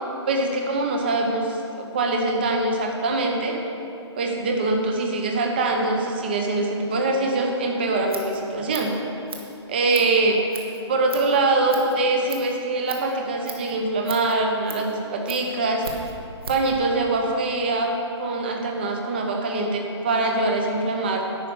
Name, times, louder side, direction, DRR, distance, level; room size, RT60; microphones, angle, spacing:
voice 1, 0.3-3.6 4.2-8.9 9.7-10.4 10.9-16.1 16.5-21.2, right 2 dB, 20° right, 2 dB, 0.8 m, -23 dB
Scissors, 7.8-16.8, right 4 dB, 55° right, 1.5 m, -40 dB
11.0 x 5.3 x 7.8 m, 2.8 s
hypercardioid pair, 180°, 15 cm